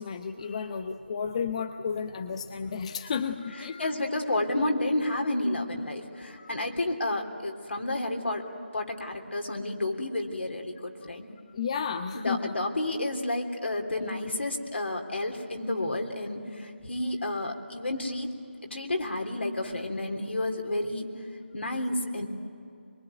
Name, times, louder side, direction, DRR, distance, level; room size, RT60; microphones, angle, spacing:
voice 1, 0.0-3.9 6.3-6.7 11.6-12.5, left 6 dB, 35° left, 8 dB, 0.8 m, -33 dB
voice 2, 3.8-8.4 8.7-11.3 12.1-18.3 18.6-21.1 21.5-22.3, left 2 dB, 80° left, 2 dB, 3.4 m, -30 dB
23.5 x 23.0 x 9.3 m, 2.6 s
figure-of-eight pair, 165°, 6 cm